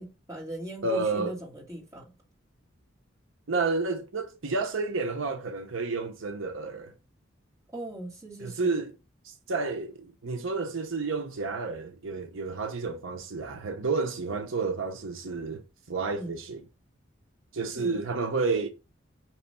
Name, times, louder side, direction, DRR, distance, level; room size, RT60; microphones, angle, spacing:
voice 1, 0.0-2.1 7.7-8.7 16.2-16.3 17.8-18.0, right 1 dB, 15° right, 2.3 m, -39 dB
voice 2, 0.8-1.4 3.5-6.9 8.4-8.9 9.2-16.6 17.5-18.7, right 3 dB, 80° right, 0.8 m, -30 dB
5.7 x 3.1 x 5.5 m
head